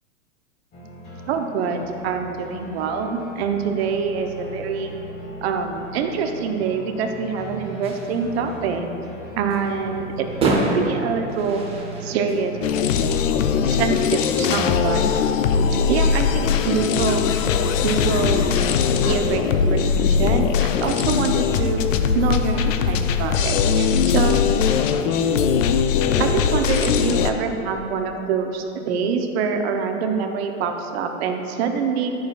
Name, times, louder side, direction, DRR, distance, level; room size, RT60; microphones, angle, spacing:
sound 1, 0.7-14.9, right 1 dB, 25° left, 1.5 m, -38 dB
voice 1, 1.3-4.9 5.4-8.9 9.4-10.3 10.7-11.6 12.0-12.9 13.6-15.0 15.9-17.2 17.8-18.5 19.0-21.8 22.1-24.4 26.2-32.1, right 5 dB, 50° right, 5 dB, 0.8 m, -25 dB
sound 2, 7.8-14.3, right 2 dB, 15° right, 0.9 m, -29 dB
sound 3, 12.6-27.3, left 7 dB, 65° left, 0.6 m, -20 dB
10.0 x 6.3 x 2.4 m, 3.0 s
hypercardioid pair, 130°, 41 cm